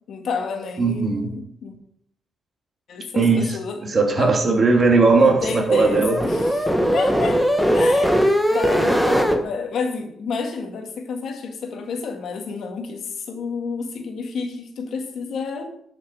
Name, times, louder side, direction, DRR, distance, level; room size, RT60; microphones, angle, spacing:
voice 1, 0.1-1.8 2.9-3.8 4.2-4.3 5.2-7.4 7.7-15.7, left 5 dB, 65° left, 5 dB, 1.8 m, -30 dB
voice 2, 0.8-1.3 3.1-6.2, right 3 dB, 35° right, 1 dB, 2.8 m, -18 dB
sound 1, 4.7-9.4, equal, ahead, 1.3 m, -20 dB
12.0 x 6.5 x 4.8 m, 0.71 s
cardioid pair, 90°, 0 cm